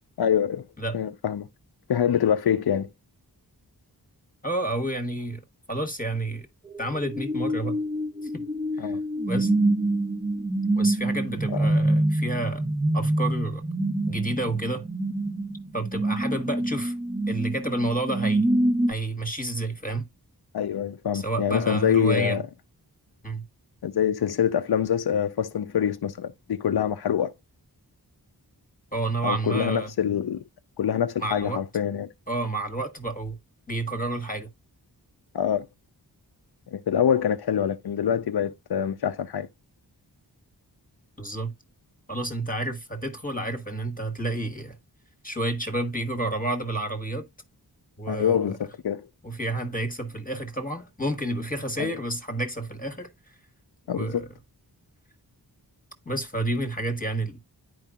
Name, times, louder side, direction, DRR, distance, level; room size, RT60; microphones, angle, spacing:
voice 1, 0.2-0.7 0.9-1.5 1.9-2.9 8.8-9.0 11.5-11.7 20.5-22.4 23.8-27.3 29.2-30.4 30.8-32.1 35.3-35.7 36.7-39.5 48.1-49.1 51.8-52.0 53.9-54.2, left 9 dB, 65° left, 0.6 m, -25 dB
voice 2, 4.4-5.4 5.7-6.5 6.8-7.8 8.3-8.4 8.8-8.9 9.3-9.5 10.7-12.7 12.9-13.6 14.1-14.9 15.7-16.9 17.3-18.5 18.9-20.1 21.1-22.4 23.2-23.4 28.9-29.9 31.2-31.6 32.3-33.4 33.7-34.5 41.2-41.5 42.1-44.8 45.2-47.3 48.0-48.5 49.2-53.3 53.9-54.3 56.0-57.4, right 2 dB, 20° left, 1.2 m, -30 dB
sound 1, 6.7-18.9, right 1 dB, 15° right, 0.8 m, -26 dB
11.0 x 4.7 x 2.3 m
wide cardioid pair, 60°, 41 cm